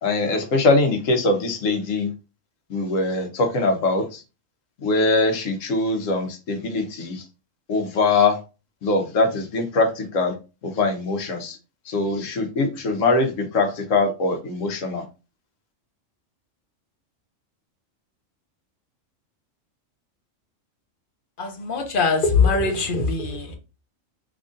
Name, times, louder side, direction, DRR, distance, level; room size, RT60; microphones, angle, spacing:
voice 1, 0.0-2.1 2.7-4.2 4.8-7.2 7.7-8.4 8.8-10.3 10.6-11.6 11.9-15.0, left 3 dB, 85° left, 5 dB, 1.2 m, -22 dB
voice 2, 21.4-23.6, left 4 dB, 50° left, 4 dB, 0.8 m, -22 dB
3.6 x 2.9 x 2.6 m, 0.31 s
omnidirectional pair, 1.3 m